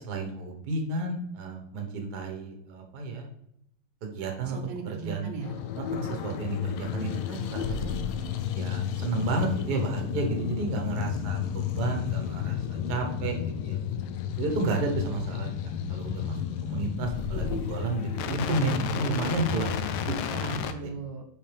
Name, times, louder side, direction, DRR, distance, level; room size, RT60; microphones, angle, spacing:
voice 1, 0.0-3.3 4.0-4.6 4.8-5.3 5.8-8.0 8.5-11.4 11.8-12.6 12.9-13.8 14.4-15.5 15.9-20.1, right 3 dB, 55° right, 2 dB, 1.5 m, -31 dB
voice 2, 4.4-5.6 20.3-21.2, right 4 dB, 75° right, 3 dB, 1.8 m, -37 dB
sound 1, 5.4-20.7, left 8 dB, 80° left, 1.4 m, -32 dB
6.7 x 5.4 x 3.3 m, 0.76 s
omnidirectional pair, 2.4 m